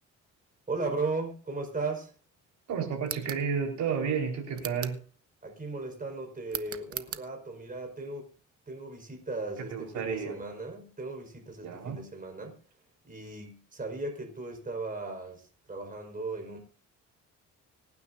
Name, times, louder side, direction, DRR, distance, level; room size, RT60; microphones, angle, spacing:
voice 1, 0.7-2.1 5.4-8.3 8.7-12.6 13.0-16.6, right 3 dB, 30° right, 4.9 m, -36 dB
voice 2, 2.7-5.0 9.7-10.3 11.6-12.0, right 6 dB, 75° right, 4.3 m, -31 dB
sound 1, 3.0-3.5 4.5-5.0 6.5-7.3, right 9 dB, 50° right, 1.0 m, -38 dB
25.0 x 9.6 x 2.6 m
cardioid pair, 90°, 30 cm